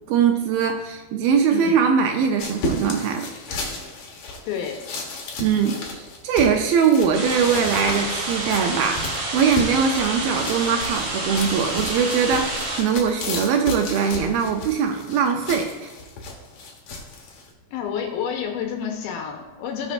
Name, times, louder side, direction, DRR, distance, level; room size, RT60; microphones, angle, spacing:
voice 1, 0.1-3.3 5.4-15.9, right 6 dB, 80° right, 4 dB, 2.3 m, -21 dB
voice 2, 1.5-1.8 4.5-4.8 17.7-19.9, left 7 dB, 75° left, 2 dB, 2.7 m, -29 dB
sound 1, 2.4-17.5, left 2 dB, 60° left, 2.1 m, -34 dB
sound 2, 7.1-12.8, right 2 dB, 45° right, 2.4 m, -29 dB
17.5 x 6.2 x 2.5 m, 1.2 s
omnidirectional pair, 4.6 m